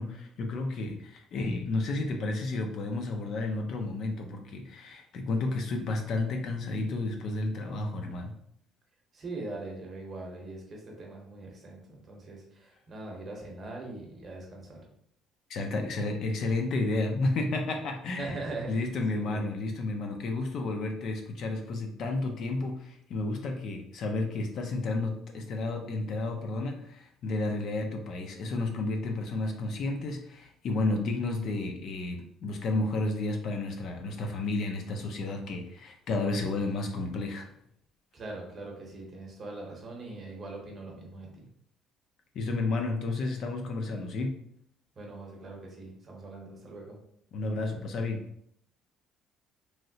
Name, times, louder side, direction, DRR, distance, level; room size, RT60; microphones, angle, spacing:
voice 1, 0.0-8.3 15.5-18.4 18.7-37.5 42.3-44.4 47.3-48.2, left 2 dB, 50° left, 3 dB, 0.4 m, -31 dB
voice 2, 9.1-14.9 18.1-19.4 38.1-41.5 45.0-47.0, right 2 dB, 30° right, -1 dB, 0.8 m, -41 dB
3.1 x 2.7 x 2.7 m, 0.70 s
cardioid pair, 165°, 0 cm